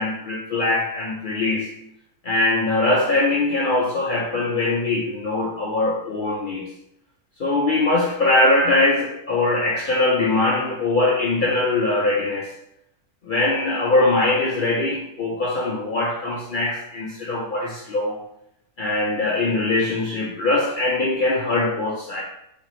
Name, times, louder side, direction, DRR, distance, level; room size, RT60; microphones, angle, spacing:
voice 1, 0.0-1.7 2.2-6.7 7.4-12.5 13.2-18.2 18.8-22.2, left 2 dB, 65° left, -4 dB, 0.5 m, -22 dB
4.2 x 2.9 x 3.1 m, 0.78 s
omnidirectional pair, 1.6 m